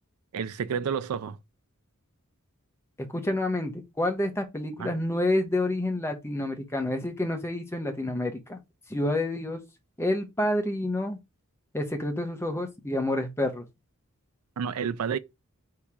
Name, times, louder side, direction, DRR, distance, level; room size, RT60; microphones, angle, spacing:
voice 1, 0.3-1.4 4.8-4.9 14.6-15.2, right 7 dB, 90° right, 0.4 m, -30 dB
voice 2, 3.1-8.6 8.9-9.6 10.0-11.2 11.7-13.7, left 1 dB, 10° left, 0.8 m, -28 dB
3.6 x 2.8 x 4.6 m
head